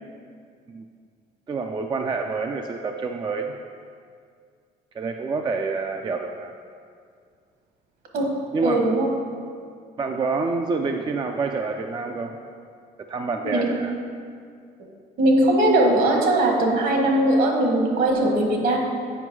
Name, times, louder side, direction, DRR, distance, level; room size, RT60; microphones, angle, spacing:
voice 1, 1.5-3.6 4.9-6.5 8.5-8.8 10.0-12.4 13.1-13.9, right 4 dB, 25° right, 4 dB, 0.4 m, -27 dB
voice 2, 8.6-9.1 13.4-13.6 15.2-18.8, right 1 dB, 65° right, 1 dB, 1.5 m, -20 dB
7.9 x 5.2 x 4.7 m, 2.2 s
cardioid pair, 110°, 17 cm